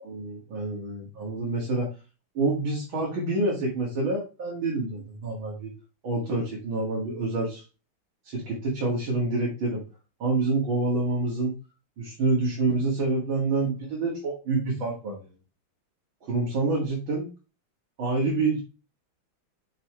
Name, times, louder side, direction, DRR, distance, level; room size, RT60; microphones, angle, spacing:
voice 1, 0.0-1.9 2.3-5.7 6.0-7.6 8.2-9.8 10.2-11.5 12.0-15.3 16.2-17.3 18.0-18.6, right 3 dB, 70° right, -4 dB, 2.8 m, -27 dB
6.8 x 5.5 x 3.2 m, 0.31 s
omnidirectional pair, 2.3 m